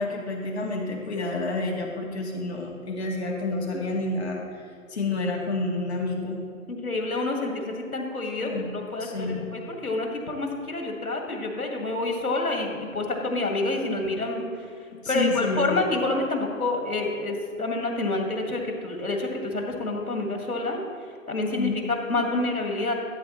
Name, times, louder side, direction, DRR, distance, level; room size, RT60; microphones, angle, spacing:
voice 1, 0.0-4.4 4.9-6.4 8.4-8.7 9.0-9.4 14.9-15.8 21.5-21.7, left 3 dB, 50° left, 0 dB, 1.8 m, -29 dB
voice 2, 6.7-14.4 15.1-20.8 21.3-22.9, left 2 dB, 90° left, 1 dB, 2.0 m, -28 dB
13.5 x 7.7 x 3.1 m, 2.3 s
figure-of-eight pair, 150°, 43 cm